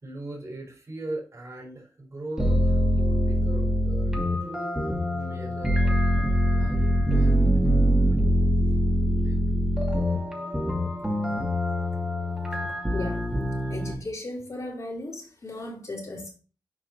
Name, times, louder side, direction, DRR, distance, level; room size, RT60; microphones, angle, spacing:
voice 1, 0.0-4.1 4.4-4.7 5.1-7.4 9.1-9.4, right 2 dB, 35° right, 4.3 m, -40 dB
sound 1, 2.4-13.9, equal, 10° right, 2.5 m, -24 dB
voice 2, 12.9-13.3 13.7-16.3, left 2 dB, 45° left, 3.5 m, -36 dB
7.5 x 4.9 x 4.5 m
wide cardioid pair, 85°, 8 cm